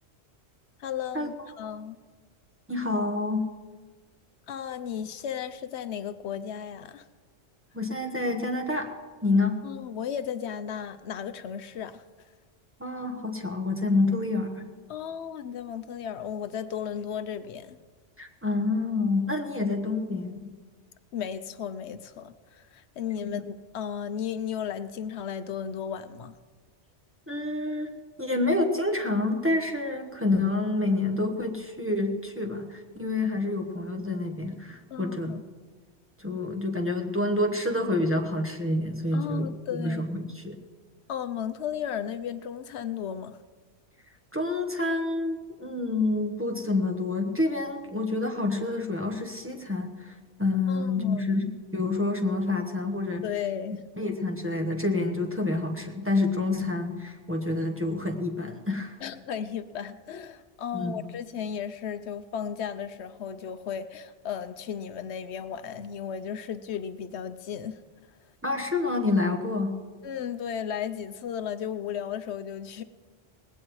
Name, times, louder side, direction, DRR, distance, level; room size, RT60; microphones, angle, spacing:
voice 1, 0.8-2.0 4.5-7.0 9.6-12.0 14.9-17.8 21.1-26.3 34.9-35.4 39.1-40.1 41.1-43.4 50.7-51.3 53.2-53.8 59.0-67.8 70.0-72.8, left 8 dB, 80° left, 11 dB, 0.9 m, -35 dB
voice 2, 2.7-3.5 7.7-8.9 9.2-9.6 12.8-14.6 18.2-20.5 23.2-23.3 27.3-27.9 28.2-35.4 36.2-40.6 44.3-53.3 54.0-59.0 60.7-61.0 68.4-69.7, left 2 dB, 10° right, 1 dB, 1.1 m, -28 dB
19.5 x 16.0 x 3.1 m, 1.4 s
omnidirectional pair, 1.1 m